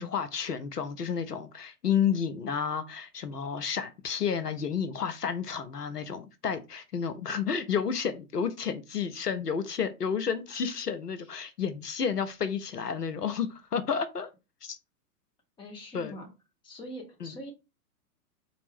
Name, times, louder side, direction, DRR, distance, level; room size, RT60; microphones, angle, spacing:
voice 1, 0.0-14.3 14.6-14.8 15.9-16.1 17.2-17.3, left 7 dB, 85° left, 0.7 m, -31 dB
voice 2, 15.6-16.3 16.6-17.5, equal, 10° left, 0.8 m, -43 dB
4.0 x 2.5 x 3.3 m
figure-of-eight pair, 105°, 46 cm